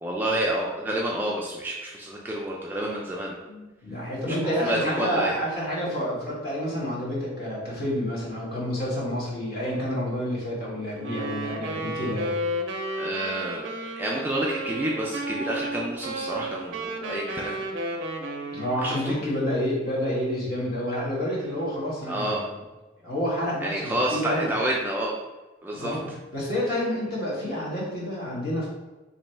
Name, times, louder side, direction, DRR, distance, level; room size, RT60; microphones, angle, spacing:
voice 1, 0.0-3.3 4.3-5.3 13.0-17.6 18.8-19.2 22.1-22.4 23.6-25.2 25.6-26.2, right 1 dB, 10° right, -3 dB, 0.3 m, -29 dB
voice 2, 3.5-12.3 17.9-18.0 18.5-22.5 23.0-24.5 25.8-28.7, equal, 50° left, -6 dB, 1.3 m, -29 dB
Wind instrument woodwind instrument, 11.0-19.0, right 1 dB, 75° right, 0.5 m, -33 dB
3.0 x 2.6 x 4.3 m, 1.2 s
head